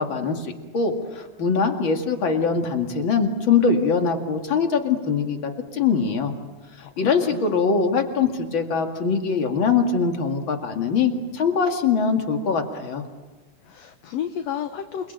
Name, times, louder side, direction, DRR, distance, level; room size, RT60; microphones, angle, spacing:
voice 1, 0.0-6.3 7.0-13.0, left 5 dB, 45° left, 4 dB, 2.7 m, -22 dB
voice 2, 6.8-7.6 13.6-15.1, left 9 dB, 65° left, 8 dB, 2.0 m, -32 dB
28.5 x 21.0 x 9.2 m, 1.3 s
omnidirectional pair, 3.5 m